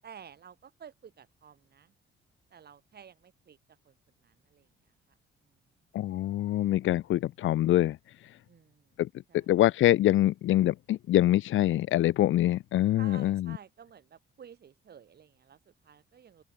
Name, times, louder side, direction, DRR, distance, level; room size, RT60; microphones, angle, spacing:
voice 1, 0.0-1.9 2.5-3.6 3.8-4.0 4.2-4.7 5.4-5.6 8.5-8.9 9.3-9.5 13.0-16.4, right 8 dB, 55° right, 7.4 m, -52 dB
voice 2, 5.9-8.0 9.5-13.6, left 14 dB, 80° left, 1.3 m, -24 dB
open air
cardioid pair, 90°, 20 cm